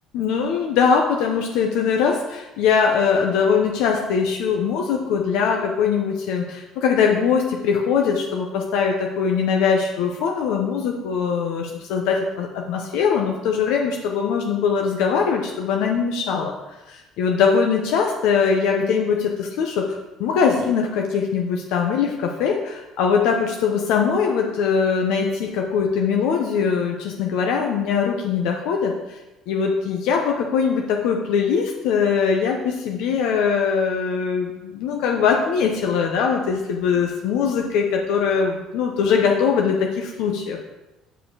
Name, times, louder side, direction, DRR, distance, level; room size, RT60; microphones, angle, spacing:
voice 1, 0.1-16.5 16.9-29.2 29.5-40.7, left 6 dB, 80° left, 1 dB, 0.9 m, -21 dB
8.0 x 5.1 x 4.8 m, 1.0 s
cardioid pair, 110°, 0 cm